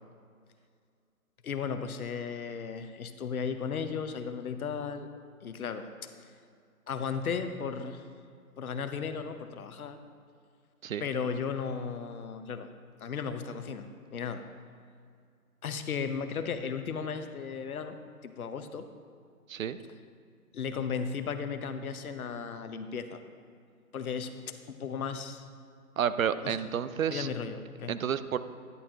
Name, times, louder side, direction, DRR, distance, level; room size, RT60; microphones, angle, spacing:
voice 1, 1.4-5.1 5.4-6.1 6.9-8.1 8.6-10.0 11.0-12.7 13.0-14.4 15.6-18.0 18.2-18.9 20.5-23.2 23.9-25.5 26.4-26.6 27.1-27.9, left 6 dB, 65° left, 9 dB, 0.9 m, -35 dB
voice 2, 26.0-27.3 27.9-28.4, right 8 dB, 60° right, 13 dB, 0.6 m, -30 dB
11.0 x 10.5 x 2.8 m, 2.3 s
figure-of-eight pair, 140°, 46 cm